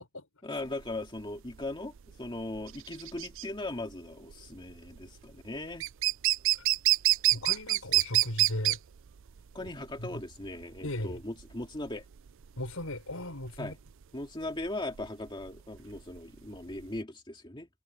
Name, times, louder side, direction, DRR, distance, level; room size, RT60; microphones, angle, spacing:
voice 1, 0.4-1.9 2.2-5.9 9.5-12.0 13.6-13.7 14.1-17.7, left 2 dB, 25° left, 2.3 m, -38 dB
sound 1, 0.6-17.0, right 15 dB, 65° right, 0.5 m, -29 dB
voice 2, 7.3-8.8 9.6-9.7 10.0-10.2 10.8-11.2 12.6-13.8, left 1 dB, 85° left, 5.7 m, -37 dB
head